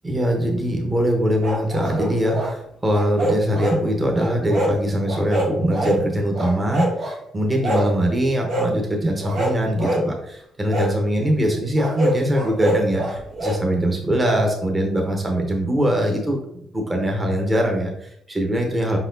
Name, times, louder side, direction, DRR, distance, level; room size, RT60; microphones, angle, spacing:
voice 1, 0.0-19.0, equal, 20° right, 1 dB, 0.9 m, -22 dB
Angry Dogs Barking, 1.4-2.5 2.9-3.8 4.1-4.8 5.1-6.0 6.3-7.2 7.6-7.9 8.5-8.7 9.2-10.1 10.7-10.9 11.8-13.6, right 1 dB, 80° right, 1.1 m, -25 dB
4.7 x 4.0 x 2.6 m, 0.72 s
cardioid pair, 90°, 0 cm